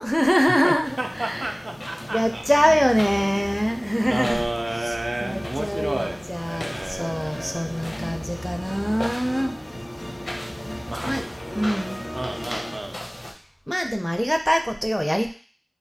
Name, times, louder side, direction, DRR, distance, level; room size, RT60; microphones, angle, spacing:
voice 1, 0.0-1.5 2.1-4.5 4.9-5.0 5.2-9.6 11.1-12.0 13.7-15.3, equal, 5° left, 5 dB, 0.4 m, -24 dB
voice 2, 0.6-2.4 4.1-8.0 10.9-13.0, right 1 dB, 55° right, 3 dB, 0.4 m, -31 dB
sound 1, 0.8-12.8, equal, 90° left, 1.3 m, -37 dB
sound 2, 0.8-13.3, left 1 dB, 65° left, 0.6 m, -38 dB
3.2 x 2.2 x 2.6 m, 0.41 s
wide cardioid pair, 45°, 0 cm